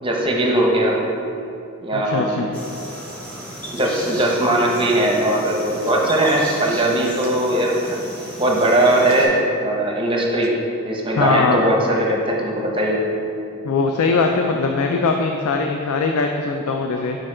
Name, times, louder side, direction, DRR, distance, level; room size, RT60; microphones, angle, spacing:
voice 1, 0.0-1.0 1.8-2.5 3.7-8.0 8.4-10.5 10.8-13.0, right 1 dB, 25° right, -1 dB, 0.6 m, -19 dB
voice 2, 1.9-2.5 11.2-11.6 13.6-17.2, left 4 dB, 85° left, 3 dB, 0.4 m, -21 dB
sound 1, 2.5-9.3, equal, 5° left, 0.9 m, -35 dB
Clapping, 5.9-6.1 7.2-7.4 8.7-8.8 9.1-9.3 10.4-10.6, right 4 dB, 70° right, 0.4 m, -35 dB
6.4 x 5.1 x 3.7 m, 2.6 s
head